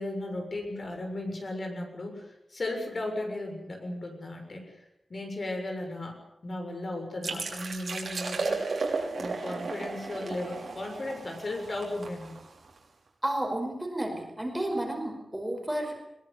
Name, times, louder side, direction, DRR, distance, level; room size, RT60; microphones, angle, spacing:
voice 1, 0.0-4.9 5.1-8.7 9.1-12.3, left 1 dB, 45° left, 3 dB, 6.9 m, -36 dB
sound 1, 7.2-12.8, right 4 dB, 65° right, 5.7 m, -34 dB
voice 2, 13.2-16.0, right 1 dB, 10° right, 3 dB, 5.2 m, -32 dB
22.5 x 22.0 x 8.4 m, 0.82 s
wide cardioid pair, 130°, 0 cm